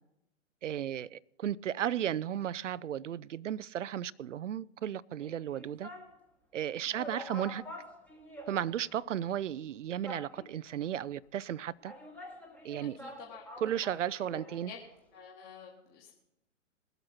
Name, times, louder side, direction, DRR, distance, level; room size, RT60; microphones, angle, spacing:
voice 1, 0.6-5.9 6.5-7.6 8.5-11.9 12.6-13.0 13.6-14.7, right 10 dB, 70° right, 0.5 m, -34 dB
sound 1, 5.2-6.2 6.6-6.7 6.9-9.0 9.3-9.4 10.0-10.7 11.5-14.7 14.9-15.0, equal, 5° left, 1.1 m, -47 dB
voice 2, 12.8-13.5 13.7-13.8 14.2-14.3 14.6-14.8 15.1-16.1, left 6 dB, 25° left, 1.7 m, -50 dB
20.0 x 8.0 x 4.3 m
figure-of-eight pair, 120°, 38 cm